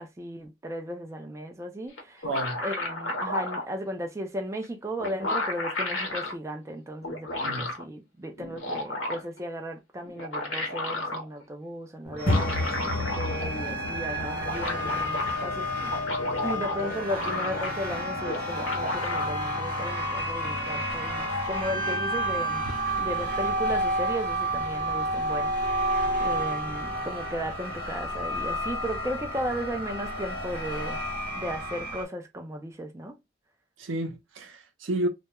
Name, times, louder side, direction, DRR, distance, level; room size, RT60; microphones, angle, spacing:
voice 1, 0.0-2.3 2.6-15.9 16.4-22.6 23.0-31.0 31.4-33.2, equal, 15° right, 0.3 m, -35 dB
sound 1, 2.0-3.7 4.6-4.7 5.0-6.3 7.0-7.8 8.4-9.4 10.0-11.2 12.1-13.6 13.9-14.0 14.2-15.3 15.8-17.9 18.2-19.3, left 2 dB, 70° left, 0.9 m, -32 dB
voice 2, 2.2-2.6 7.4-7.7 22.7-22.8 33.8-35.1, right 1 dB, 75° right, 0.6 m, -31 dB
sound 2, 12.0-31.9, left 1 dB, 40° left, 0.8 m, -38 dB
sound 3, 12.2-32.0, equal, 50° right, 0.8 m, -31 dB
2.2 x 2.1 x 2.8 m
head